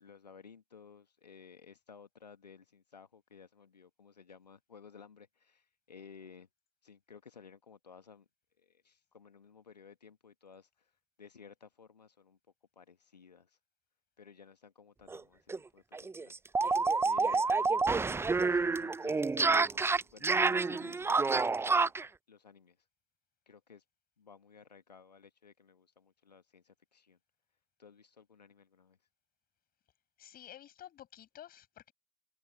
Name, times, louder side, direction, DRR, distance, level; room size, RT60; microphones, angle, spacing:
voice 1, 0.0-6.5 6.8-8.3 8.6-10.9 11.2-12.4 12.7-13.6 14.2-16.3 17.0-19.2 19.6-21.9 22.3-22.8 23.5-23.8 24.2-27.2 27.8-29.0, left 6 dB, 85° left, 1.6 m, -56 dB
sound 1, 15.1-15.2 15.5-15.6 15.9-22.1, right 4 dB, 10° right, 0.5 m, -28 dB
voice 2, 30.2-31.9, left 11 dB, 45° left, 7.1 m, -52 dB
figure-of-eight pair, 60°, 21 cm